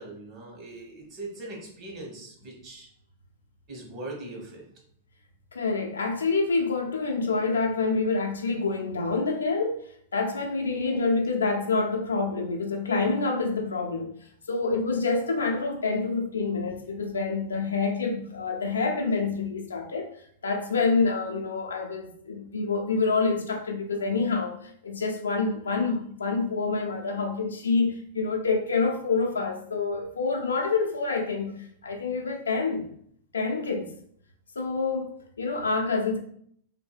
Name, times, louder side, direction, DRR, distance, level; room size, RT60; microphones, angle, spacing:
voice 1, 0.0-2.9 3.7-4.6, right 2 dB, 40° right, 1.0 m, -40 dB
voice 2, 5.5-9.8 10.1-14.1 14.5-20.1 20.4-31.5 31.8-32.9 33.3-33.9 34.6-36.2, left 4 dB, 75° left, 0.4 m, -27 dB
2.6 x 2.6 x 2.3 m
figure-of-eight pair, 95°, 0 cm